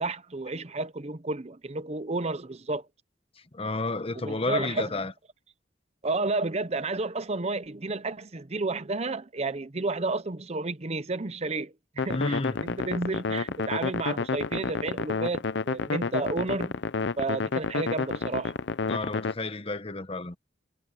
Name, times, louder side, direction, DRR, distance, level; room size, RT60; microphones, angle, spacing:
voice 1, 0.0-2.8 4.2-4.9 6.0-11.7 12.0-16.7 17.2-18.5, right 3 dB, 35° right, 0.8 m, -31 dB
voice 2, 3.5-5.1 12.1-12.6 18.9-20.4, left 2 dB, 30° left, 1.1 m, -31 dB
sound 1, 12.0-19.3, left 4 dB, 70° left, 0.6 m, -30 dB
head